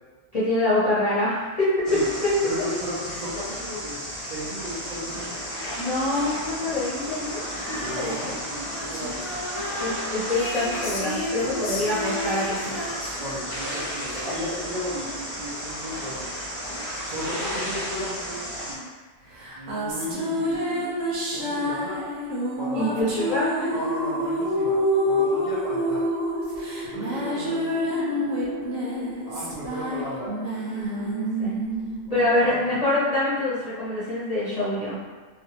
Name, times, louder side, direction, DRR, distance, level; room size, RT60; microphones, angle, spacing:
voice 1, 0.3-2.3 2.6-2.7 5.8-7.4 7.7-8.2 9.8-12.8 22.7-23.5 30.7-31.6 32.1-35.0, left 2 dB, 40° left, -11 dB, 0.6 m, -25 dB
sound 1, 1.8-18.7, equal, 20° right, 0.9 m, -33 dB
voice 2, 2.4-5.7 7.8-9.1 11.3-12.0 13.2-16.3 17.0-18.8 19.5-21.0 21.3-22.2 22.6-23.4 23.7-24.8 25.0-26.0 26.8-28.5 29.2-30.4 32.1-32.7, equal, 50° right, -11 dB, 0.6 m, -35 dB
Female singing, 7.5-14.9, left 1 dB, 80° left, 0.3 m, -34 dB
sound 2, 19.4-33.0, equal, 90° right, 1.1 m, -27 dB
2.6 x 2.2 x 2.8 m, 1.4 s
omnidirectional pair, 1.4 m